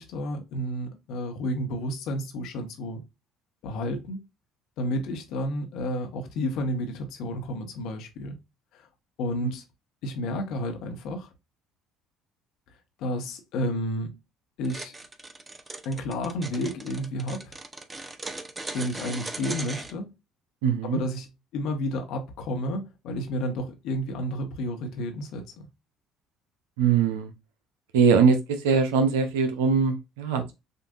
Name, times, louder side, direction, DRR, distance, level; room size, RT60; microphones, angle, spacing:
voice 1, 0.0-3.0 3.6-4.2 4.8-8.4 8.7-8.9 9.2-9.6 10.0-11.3 13.0-14.2 14.6-14.9 15.8-17.5 18.7-20.1 20.8-21.3 21.5-25.5, left 1 dB, 65° left, 1.1 m, -31 dB
sound 1, 14.6-19.9, right 2 dB, 25° right, 0.7 m, -38 dB
voice 2, 20.6-21.0 26.8-27.3 27.9-30.5, right 6 dB, 80° right, 0.7 m, -22 dB
6.6 x 2.6 x 2.4 m
hypercardioid pair, 60°, 0 cm